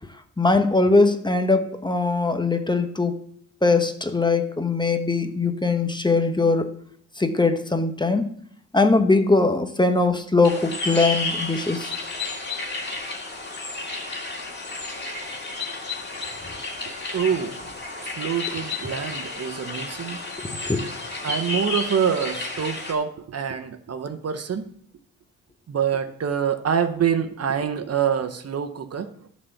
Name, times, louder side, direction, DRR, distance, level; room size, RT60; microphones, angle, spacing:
voice 1, 0.4-3.2 3.6-6.7 7.2-8.3 8.7-11.9 20.4-20.9, left 3 dB, 15° left, 7 dB, 1.1 m, -21 dB
sound 1, 10.4-22.9, left 3 dB, 30° left, 2.2 m, -32 dB
voice 2, 17.1-17.6 18.0-20.2 21.2-24.7 25.7-29.3, right 7 dB, 50° right, 8 dB, 0.9 m, -26 dB
11.0 x 4.1 x 7.0 m, 0.64 s
cardioid pair, 65°, 32 cm